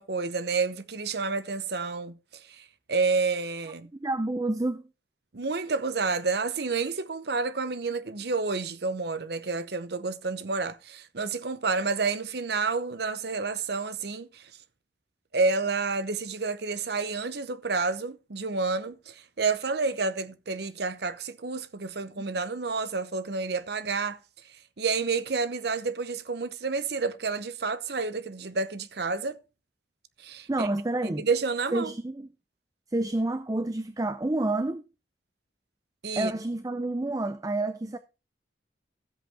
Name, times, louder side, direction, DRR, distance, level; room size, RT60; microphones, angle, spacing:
voice 1, 0.0-3.9 5.3-14.5 15.3-24.2 24.8-29.4 30.2-30.7 31.0-31.9 36.0-36.3, right 4 dB, 60° right, 0.8 m, -29 dB
voice 2, 3.9-4.9 22.2-22.3 30.5-31.3 31.7-32.3 32.9-34.9 36.2-38.0, right 2 dB, 20° right, 0.5 m, -29 dB
14.0 x 8.0 x 3.5 m
head